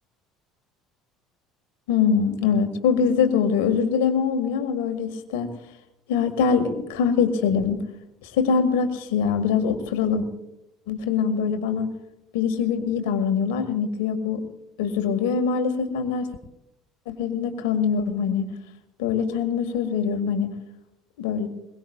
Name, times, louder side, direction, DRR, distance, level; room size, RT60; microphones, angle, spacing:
voice 1, 1.9-5.5 6.1-7.8 8.2-10.3 10.9-11.9 12.3-14.4 14.8-16.3 17.1-18.5 19.0-20.5 21.2-21.5, left 6 dB, 65° left, 8 dB, 2.0 m, -23 dB
22.0 x 21.5 x 2.4 m, 0.88 s
figure-of-eight pair, 60°, 0 cm